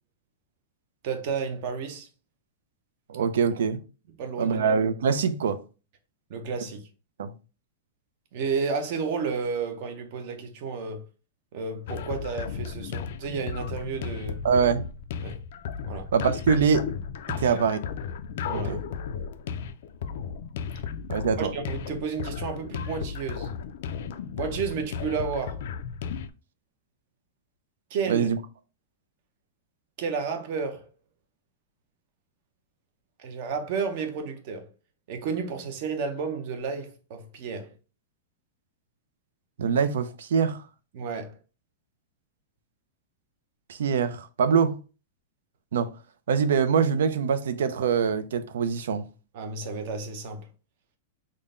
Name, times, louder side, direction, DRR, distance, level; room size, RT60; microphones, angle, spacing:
voice 1, 1.0-2.1 4.2-4.6 6.3-6.8 8.3-11.0 11.5-14.4 15.2-15.4 15.8-16.1 17.4-17.6 18.4-18.8 21.4-23.5 24.4-25.6 27.9-28.3 30.0-30.9 33.2-34.7 35.1-37.7 40.9-41.4 49.3-50.5, right 5 dB, 40° right, 0.7 m, -32 dB
voice 2, 3.1-3.8 4.4-5.6 7.2-7.3 14.4-14.8 16.1-16.9 17.3-17.8 18.5-18.8 21.1-21.5 28.1-28.4 39.6-40.6 43.7-44.8 45.7-45.9 46.3-49.1, right 6 dB, 85° right, 0.4 m, -24 dB
sound 1, 11.9-26.3, left 7 dB, 55° left, 0.3 m, -35 dB
3.7 x 2.1 x 3.7 m
supercardioid pair, 175°, 0 cm